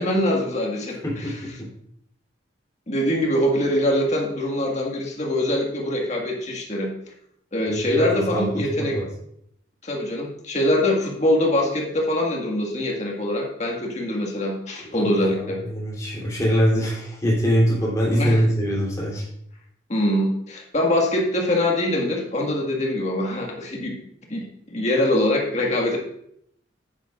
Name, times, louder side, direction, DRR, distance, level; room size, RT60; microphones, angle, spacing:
voice 1, 0.0-1.4 2.9-6.9 7.5-9.0 9.8-15.6 18.1-18.4 19.9-24.0 24.3-26.0, left 1 dB, 35° left, 0 dB, 1.7 m, -23 dB
voice 2, 1.0-1.5 7.7-8.5 8.8-9.0 14.9-19.2, equal, 15° left, -5 dB, 3.2 m, -23 dB
10.5 x 9.1 x 2.5 m, 0.71 s
head